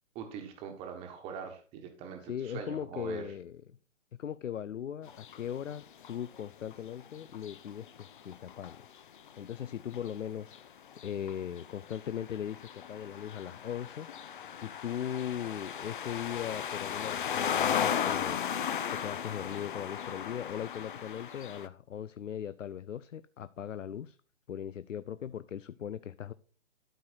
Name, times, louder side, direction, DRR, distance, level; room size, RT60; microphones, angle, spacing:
voice 1, 0.1-3.3, right 7 dB, 15° right, 1.3 m, -42 dB
voice 2, 2.2-3.6 4.2-8.9 9.4-10.7 11.0-14.1 14.6-24.2 24.5-26.3, left 9 dB, 85° left, 0.6 m, -39 dB
sound 1, 5.0-5.4 5.7-6.4 6.7-21.7, left 8 dB, 45° left, 0.7 m, -36 dB
12.0 x 4.6 x 4.4 m
hypercardioid pair, 150°, 37 cm